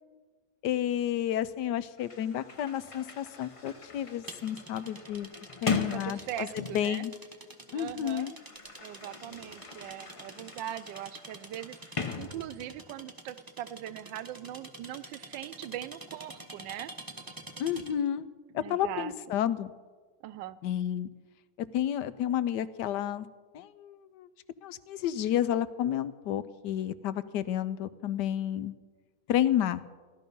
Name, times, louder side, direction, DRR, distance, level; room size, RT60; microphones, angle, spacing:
voice 1, 0.6-5.3 5.6-7.1 7.7-8.3 17.6-18.3 18.5-19.7 20.6-21.1 21.7-23.3 23.5-24.3 24.6-28.7 29.3-29.8, left 10 dB, 75° left, 15 dB, 1.3 m, -31 dB
Sliding door, 2.0-7.0 8.0-12.9, left 4 dB, 30° left, 0.6 m, -40 dB
sound 1, 4.3-18.1, right 2 dB, 15° right, 0.8 m, -48 dB
voice 2, 5.7-7.1 7.7-8.3 8.8-16.9 17.3-17.4 18.5-19.4 20.2-20.6, right 12 dB, 80° right, 16 dB, 1.3 m, -41 dB
15.5 x 12.5 x 5.4 m, 1.4 s
omnidirectional pair, 2.0 m